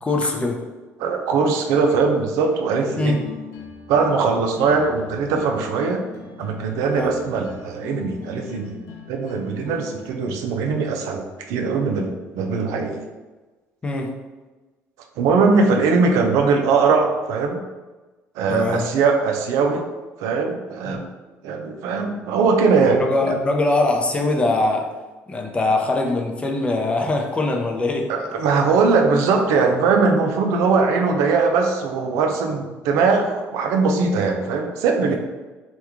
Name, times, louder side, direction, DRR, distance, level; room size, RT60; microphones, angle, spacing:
voice 1, 0.0-0.6 3.0-3.2 6.9-7.1 13.8-14.1 18.5-18.9 20.8-21.0 23.0-24.9 25.3-28.1 35.0-35.2, left 2 dB, 20° left, 2 dB, 0.5 m, -22 dB
voice 2, 1.0-3.2 3.9-6.0 6.4-8.8 9.1-13.0 15.2-17.6 18.4-19.8 20.2-21.1 21.4-23.0 23.3-23.4 28.1-35.2, right 4 dB, 85° right, 3 dB, 0.4 m, -20 dB
sound 1, 2.9-10.1, left 5 dB, 75° left, 0.6 m, -40 dB
3.0 x 2.3 x 3.4 m, 1.2 s
cardioid pair, 95°, 5 cm